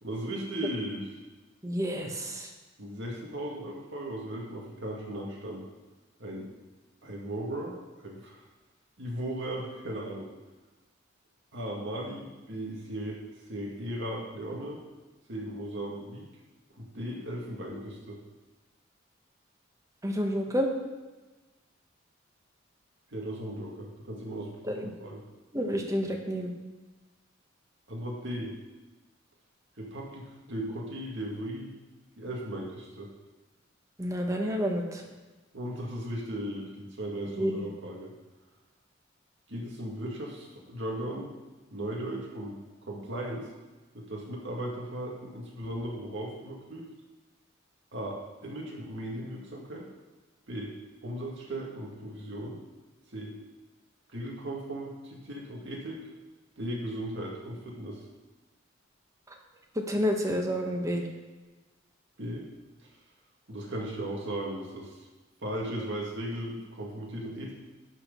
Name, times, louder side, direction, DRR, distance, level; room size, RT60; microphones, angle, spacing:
voice 1, 0.0-1.1 2.8-5.6 6.2-6.5 7.0-8.4 9.0-10.3 11.5-13.2 13.5-14.8 15.3-16.3 16.7-18.2 23.1-25.2 27.9-28.5 29.8-31.7 32.2-33.1 35.5-38.1 39.5-41.3 41.7-42.6 42.9-43.5 43.9-46.9 47.9-49.9 50.5-50.8 51.0-52.6 53.1-53.4 54.1-56.0 56.6-58.0 62.2-62.5 63.5-65.1 65.4-67.5, right 1 dB, 65° right, -2 dB, 2.1 m, -37 dB
voice 2, 1.6-2.5 20.0-20.7 24.7-24.9 25.5-26.5 34.0-35.0 37.4-37.5 59.7-61.0, equal, 15° right, 2 dB, 1.1 m, -29 dB
11.5 x 4.6 x 5.4 m, 1.2 s
head